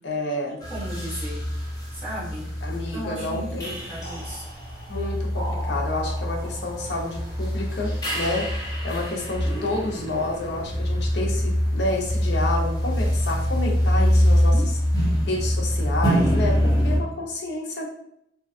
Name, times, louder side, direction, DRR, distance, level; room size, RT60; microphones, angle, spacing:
voice 1, 0.0-0.6 2.6-3.7 4.9-8.5 8.8-14.5 15.3-17.9, left 2 dB, 60° left, -2 dB, 0.6 m, -29 dB
sound 1, 0.6-17.0, equal, 20° left, 0.7 m, -24 dB
voice 2, 0.7-1.4 1.9-2.5 2.8-4.4 14.0-14.7, equal, 10° right, -12 dB, 1.2 m, -35 dB
2.6 x 2.2 x 2.4 m, 0.76 s
head